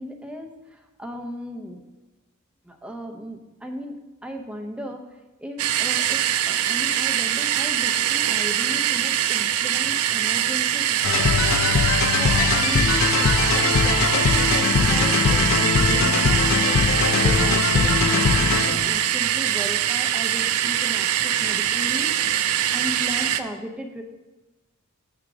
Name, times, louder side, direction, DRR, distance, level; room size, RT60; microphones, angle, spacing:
voice 1, 0.0-1.9 2.6-5.1 5.4-11.6 12.2-16.9 17.2-22.2 22.7-24.0, equal, 5° right, 3 dB, 0.6 m, -36 dB
sound 1, 5.6-23.4, right 11 dB, 75° right, 0.4 m, -23 dB
sound 2, 11.0-19.0, left 5 dB, 65° left, 0.5 m, -21 dB
7.9 x 3.6 x 6.1 m, 1.1 s
head